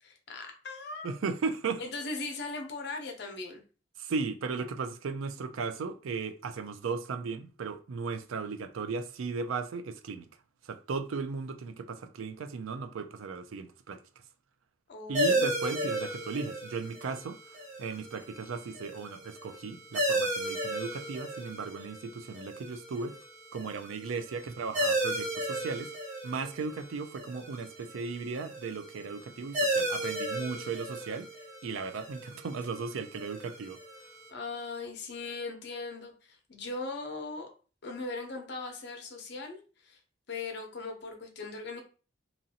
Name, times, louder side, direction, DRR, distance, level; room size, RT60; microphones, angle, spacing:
voice 1, 0.0-1.2 1.8-3.6 14.9-15.8 34.3-37.5 37.8-40.0 40.3-41.8, left 3 dB, 55° left, 0.7 m, -39 dB
voice 2, 1.0-1.8 4.0-10.3 10.6-14.0 15.1-23.2 23.5-25.9 26.2-31.3 31.6-33.8, right 4 dB, 85° right, 0.4 m, -36 dB
sound 1, 15.1-34.3, right 1 dB, 40° right, 1.1 m, -35 dB
2.9 x 2.6 x 2.7 m
head